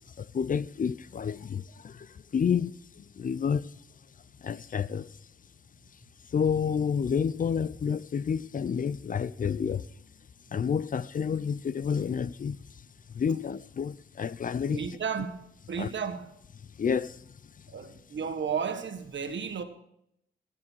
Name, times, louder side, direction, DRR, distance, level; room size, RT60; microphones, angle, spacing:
voice 1, 0.0-3.7 4.4-5.2 6.3-9.9 10.5-12.6 13.1-14.8 15.8-15.9 16.8-17.3, left 7 dB, 45° left, 0.4 m, -30 dB
voice 2, 14.7-16.3 17.7-19.6, right 6 dB, 70° right, 1.5 m, -33 dB
16.0 x 9.0 x 4.6 m
cardioid pair, 85°, 20 cm